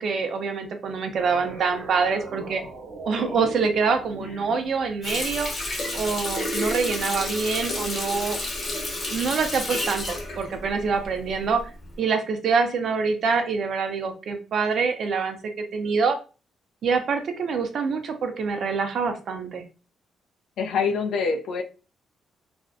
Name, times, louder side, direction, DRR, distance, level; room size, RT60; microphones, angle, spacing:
voice 1, 0.0-2.6 3.0-5.5 5.9-8.4 9.1-11.6 12.0-16.2 16.8-19.6, right 5 dB, 55° right, 6 dB, 0.5 m, -25 dB
sound 1, 1.2-6.5, right 3 dB, 80° right, 0.8 m, -41 dB
Water tap faucet, 5.0-11.4 11.8-12.0, left 1 dB, 40° left, 0.9 m, -30 dB
voice 2, 20.6-21.6, left 5 dB, 80° left, 5 dB, 0.4 m, -26 dB
2.4 x 2.0 x 2.4 m, 0.34 s
cardioid pair, 120°, 0 cm